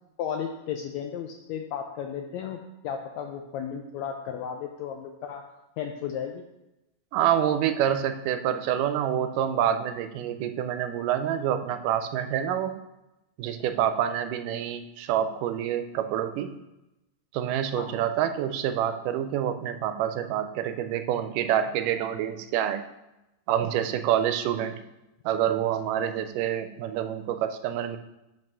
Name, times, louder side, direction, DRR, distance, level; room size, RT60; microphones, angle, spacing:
voice 1, 0.2-2.6 2.8-5.4 5.8-6.4 17.8-17.9, left 8 dB, 85° left, 4 dB, 1.6 m, -34 dB
voice 2, 7.1-12.7 13.4-16.5 17.3-22.8 23.5-24.8 25.3-28.0, right 10 dB, 90° right, 9 dB, 2.1 m, -27 dB
5.5 x 5.3 x 6.1 m, 0.95 s
omnidirectional pair, 3.7 m